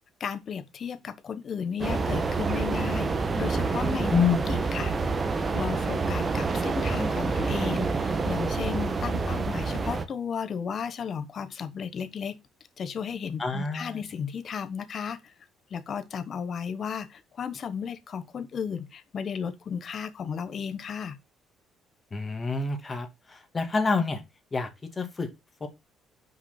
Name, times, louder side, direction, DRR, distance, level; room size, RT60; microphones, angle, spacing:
voice 1, 0.2-4.1 4.5-4.9 5.5-12.4 12.8-15.3 15.7-21.2, left 7 dB, 50° left, 1.1 m, -34 dB
sound 1, 1.8-10.0, right 4 dB, 30° right, 1.4 m, -27 dB
voice 2, 4.1-4.4 13.4-14.0 22.1-24.2 24.5-25.3 25.6-25.7, left 5 dB, 30° left, 2.1 m, -27 dB
6.0 x 5.0 x 5.7 m
cardioid pair, 85°, 0 cm